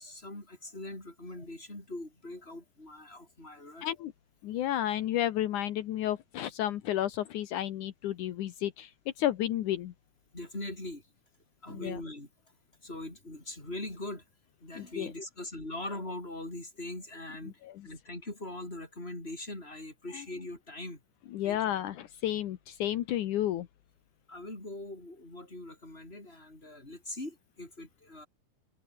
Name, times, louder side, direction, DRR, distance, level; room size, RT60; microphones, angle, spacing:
voice 1, 0.0-3.9 10.3-11.0 11.6-12.3 12.8-14.2 14.6-21.0 21.4-21.6 24.3-28.3, left 1 dB, 15° left, 7.1 m, -41 dB
voice 2, 3.8-4.1 4.4-8.9 9.2-9.9 11.7-12.0 14.8-15.1 17.6-17.9 20.1-20.2 21.3-23.7, left 12 dB, 75° left, 2.6 m, -32 dB
omnidirectional pair, 3.6 m